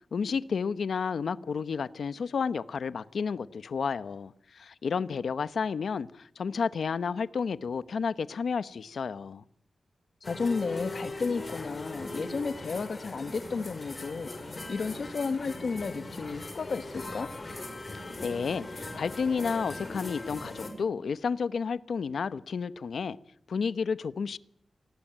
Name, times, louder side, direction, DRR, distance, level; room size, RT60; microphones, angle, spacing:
voice 1, 0.1-9.4 17.9-23.2 23.5-24.4, left 5 dB, 80° left, 1.0 m, -31 dB
voice 2, 10.2-17.3, left 4 dB, 60° left, 1.3 m, -33 dB
sound 1, 10.2-20.7, left 2 dB, 30° left, 6.1 m, -40 dB
29.0 x 20.0 x 9.1 m
wide cardioid pair, 155°, 0 cm